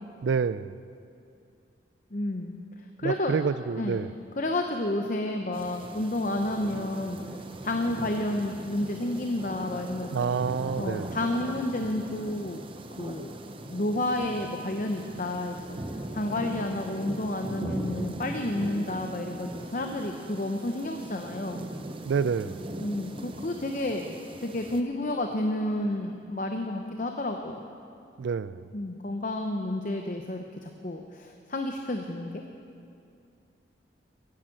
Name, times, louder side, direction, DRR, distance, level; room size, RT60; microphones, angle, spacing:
voice 1, 0.2-0.7 3.0-4.1 10.1-11.2 22.1-22.6 28.2-28.7, right 5 dB, 75° right, 16 dB, 0.4 m, -28 dB
voice 2, 2.1-3.4 3.8-4.0 4.4-7.2 7.6-10.4 10.8-12.6 13.0-13.3 13.7-15.8 16.1-21.6 22.8-24.0 24.4-27.6 28.7-32.4, left 1 dB, 45° left, 4 dB, 0.7 m, -31 dB
sound 1, 5.5-24.8, right 1 dB, 30° right, 0.7 m, -39 dB
14.5 x 10.5 x 7.7 m, 2.5 s
head